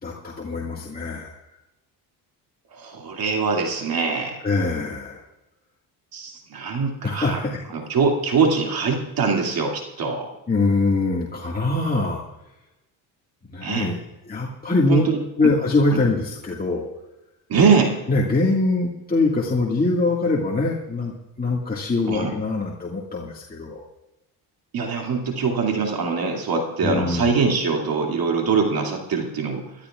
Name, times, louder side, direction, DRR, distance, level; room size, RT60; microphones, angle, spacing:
voice 1, 0.0-1.3 4.4-5.2 7.0-7.6 10.5-12.2 13.5-14.0 14.3-15.0 15.4-16.9 18.1-21.1 21.4-23.9 26.8-27.3, left 2 dB, 20° left, -3 dB, 1.9 m, -23 dB
voice 2, 2.7-4.4 6.1-7.4 7.7-10.3 13.6-14.0 14.9-15.2 15.9-16.0 17.5-18.0 22.1-22.3 24.7-29.6, right 5 dB, 60° right, 1 dB, 2.5 m, -23 dB
24.0 x 13.0 x 2.4 m, 0.95 s
cardioid pair, 90°, 40 cm